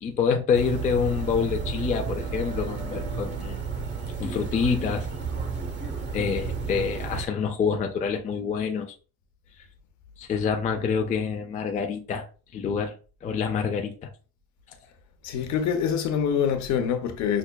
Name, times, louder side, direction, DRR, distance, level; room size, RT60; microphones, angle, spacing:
voice 1, 0.0-3.6 4.2-5.1 6.1-8.9 10.2-12.3 12.5-12.9 13.2-14.1, left 6 dB, 20° left, 0.4 m, -27 dB
sound 1, 0.5-7.3, right 5 dB, 30° right, 0.7 m, -32 dB
voice 2, 15.2-17.4, left 7 dB, 55° left, 0.8 m, -25 dB
5.8 x 2.1 x 2.2 m
cardioid pair, 130°, 35 cm